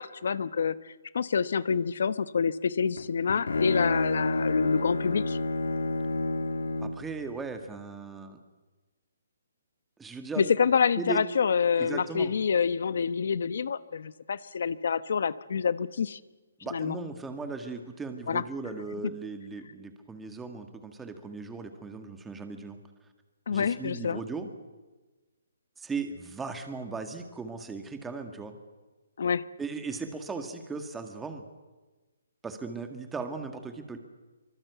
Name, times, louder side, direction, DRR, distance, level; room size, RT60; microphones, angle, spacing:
voice 1, 0.0-5.4 10.4-16.2 16.7-17.0 18.3-18.4 23.5-24.2 29.2-29.4, left 6 dB, 60° left, 15 dB, 1.0 m, -27 dB
Bowed string instrument, 3.0-7.1, left 2 dB, 85° left, 2.0 m, -29 dB
voice 2, 6.8-8.4 10.0-10.5 11.0-11.2 11.8-12.3 16.6-22.8 23.5-24.5 25.8-28.5 29.6-31.4 32.4-34.0, right 4 dB, 5° right, 6 dB, 1.8 m, -37 dB
25.0 x 24.5 x 8.2 m, 1.2 s
hypercardioid pair, 165°, 0 cm